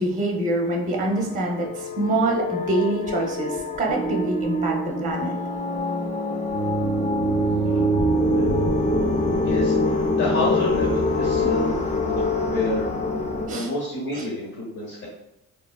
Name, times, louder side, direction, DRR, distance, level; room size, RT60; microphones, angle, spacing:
voice 1, 0.0-5.3 13.5-13.7 14.1-14.2, right 2 dB, 25° right, 0 dB, 0.6 m, -25 dB
sound 1, 0.9-13.5, left 1 dB, 25° left, 0.4 m, -24 dB
voice 2, 9.4-11.8 12.5-12.9 13.4-15.1, left 2 dB, 65° left, -5 dB, 1.2 m, -28 dB
3.5 x 2.1 x 2.3 m, 0.86 s
cardioid pair, 90°, 30 cm